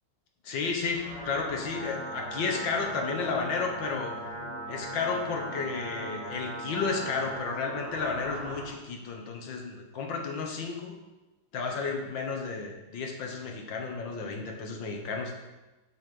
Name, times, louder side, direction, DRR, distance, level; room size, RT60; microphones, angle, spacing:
voice 1, 0.4-4.1 4.7-10.9 11.5-15.5, left 4 dB, 70° left, 1 dB, 1.8 m, -32 dB
sound 1, 0.7-8.7, right 1 dB, 5° right, 2.6 m, -39 dB
7.4 x 4.2 x 6.8 m, 1.1 s
omnidirectional pair, 2.2 m